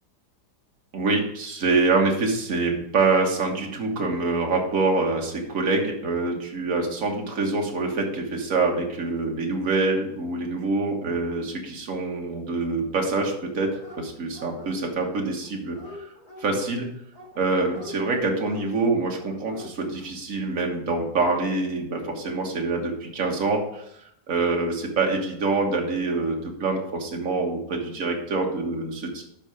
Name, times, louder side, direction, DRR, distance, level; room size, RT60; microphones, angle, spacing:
voice 1, 0.9-15.8 16.4-16.9 17.4-23.8 24.3-29.2, right 3 dB, 50° right, 1 dB, 1.8 m, -25 dB
Dog, 13.6-14.1 14.3-15.1 15.4-16.4 17.1-17.9 18.4-18.7 19.2-19.7 20.0-20.1, left 3 dB, 25° left, 1.9 m, -43 dB
11.5 x 4.3 x 4.9 m, 0.76 s
omnidirectional pair, 1.8 m